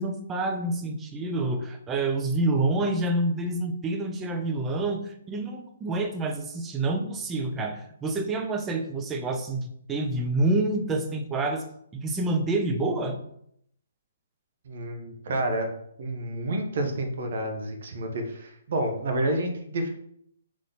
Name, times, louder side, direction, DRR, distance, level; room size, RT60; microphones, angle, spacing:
voice 1, 0.0-11.6 12.0-13.2, right 2 dB, 15° right, 5 dB, 0.5 m, -27 dB
voice 2, 14.6-15.7 16.0-19.9, right 1 dB, 55° right, 5 dB, 1.0 m, -29 dB
3.9 x 3.1 x 4.0 m, 0.70 s
figure-of-eight pair, 130°, 0 cm